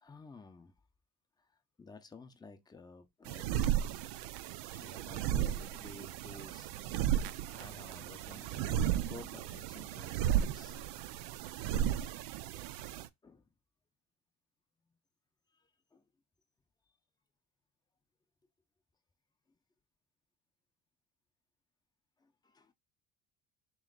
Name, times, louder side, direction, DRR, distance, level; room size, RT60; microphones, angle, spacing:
voice 1, 0.0-0.7 1.8-3.9 4.7-6.7 7.5-10.8 13.2-13.4 15.9-16.0 22.2-22.7, left 3 dB, 10° left, 0.6 m, -53 dB
sound 1, 3.3-13.1, right 10 dB, 80° right, 0.6 m, -35 dB
3.2 x 3.1 x 3.7 m
cardioid pair, 125°, 41 cm